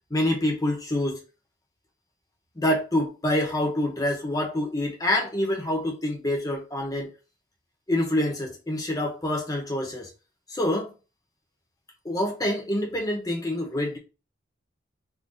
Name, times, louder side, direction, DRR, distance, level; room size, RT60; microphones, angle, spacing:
voice 1, 0.1-1.2 2.6-7.1 7.9-10.1 10.5-10.9 12.0-14.0, left 1 dB, 20° left, 0.6 m, -26 dB
3.7 x 2.3 x 2.4 m
head